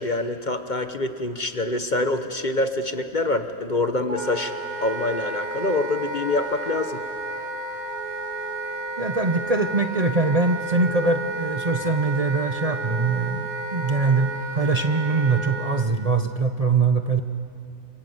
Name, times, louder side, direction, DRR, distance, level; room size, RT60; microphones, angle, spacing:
voice 1, 0.0-4.5 4.8-7.0, left 2 dB, 35° left, 8 dB, 1.2 m, -25 dB
Wind instrument woodwind instrument, 4.1-15.9, right 2 dB, 75° right, 2.6 m, -32 dB
voice 2, 9.0-14.3 14.5-17.2, right 3 dB, 30° right, 6 dB, 0.8 m, -22 dB
28.5 x 26.5 x 8.0 m, 2.4 s
omnidirectional pair, 1.5 m